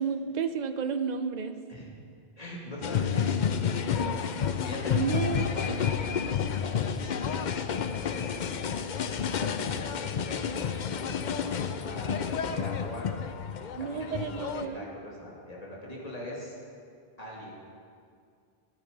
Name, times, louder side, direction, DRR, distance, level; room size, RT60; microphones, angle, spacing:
voice 1, 0.0-1.6 4.9-5.5 13.8-14.9, right 6 dB, 50° right, 9 dB, 0.8 m, -31 dB
voice 2, 2.4-4.1 4.6-7.2 8.0-13.1 13.6-16.5 17.2-17.6, left 1 dB, 40° left, -4 dB, 2.8 m, -41 dB
sound 1, 2.8-14.7, left 7 dB, 55° left, 0.6 m, -30 dB
14.5 x 11.0 x 5.3 m, 2.2 s
omnidirectional pair, 1.0 m